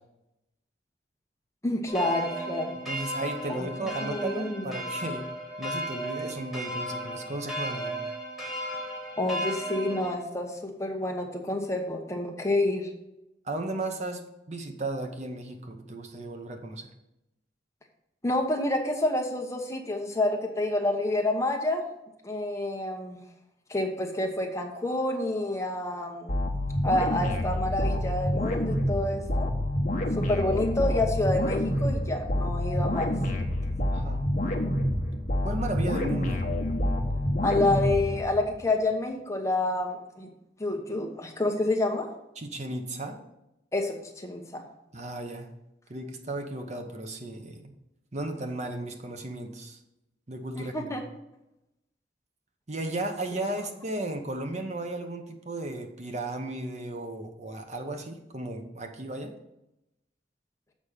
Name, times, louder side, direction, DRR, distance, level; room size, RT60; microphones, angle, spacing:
voice 1, 1.6-2.8 3.5-4.6 9.2-12.9 18.2-21.8 22.2-23.2 23.7-26.4 26.8-29.5 30.2-33.1 37.4-40.3 40.6-42.1 43.7-44.6 50.6-51.0, left 2 dB, 15° left, 3 dB, 1.0 m, -28 dB
sound 1, 1.9-10.2, equal, ahead, 1.8 m, -35 dB
voice 2, 2.9-5.3 5.6-8.0 13.4-16.9 33.9-34.2 35.4-36.5 42.4-43.2 44.9-45.5 45.9-47.7 48.1-49.8 50.3-51.0 52.7-59.3, right 2 dB, 40° right, 5 dB, 0.9 m, -35 dB
sound 2, 26.3-38.6, left 1 dB, 45° left, 1.1 m, -28 dB
7.4 x 5.2 x 6.6 m, 0.89 s
head